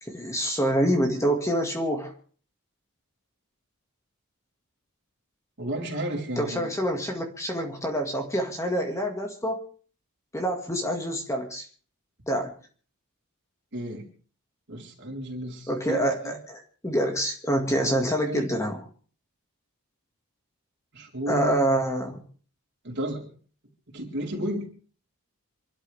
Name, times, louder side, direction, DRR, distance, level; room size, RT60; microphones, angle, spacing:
voice 1, 0.0-2.1 6.4-9.6 10.3-11.7 12.3-12.5 15.7-18.8 21.3-22.2, right 1 dB, 15° left, 3 dB, 2.0 m, -26 dB
voice 2, 5.6-6.7 13.7-14.1 14.7-16.4 17.8-18.4 20.9-21.7 22.8-23.3 23.9-24.7, right 1 dB, 55° right, -1 dB, 4.4 m, -33 dB
27.0 x 12.5 x 3.5 m, 0.43 s
head